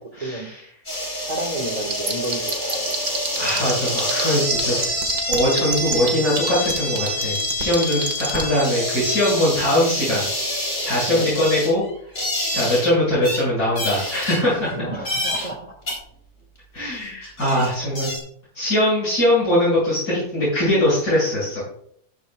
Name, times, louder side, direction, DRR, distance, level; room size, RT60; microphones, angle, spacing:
voice 1, 0.2-0.6 3.4-5.0 5.3-10.2 10.8-11.8 12.5-14.9 16.7-18.1 18.5-21.6, left 1 dB, 70° left, -9 dB, 6.4 m, -21 dB
sound 1, 0.9-12.9 13.2-13.4 13.8-14.7 15.1-15.5 15.9-16.0 16.9-17.0 17.2-18.2, left 1 dB, 55° left, 5.1 m, -27 dB
voice 2, 1.3-2.9 3.3-3.4 11.1-11.4 14.7-15.6 17.5-18.0, right 1 dB, 25° right, 2 dB, 1.5 m, -31 dB
sound 2, 1.7-4.2 4.5-8.4, right 4 dB, 75° right, 2.2 m, -25 dB
14.5 x 12.5 x 2.3 m, 0.63 s
omnidirectional pair, 1.6 m